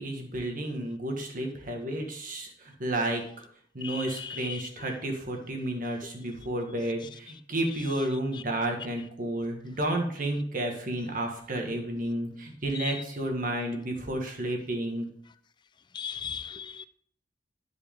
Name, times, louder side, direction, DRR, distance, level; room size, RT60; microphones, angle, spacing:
voice 1, 0.0-3.2 3.7-15.1, right 1 dB, 50° right, 1.5 m, -31 dB
voice 2, 3.8-4.6 15.9-16.9, left 7 dB, 25° left, 0.3 m, -37 dB
10.0 x 4.8 x 3.6 m
head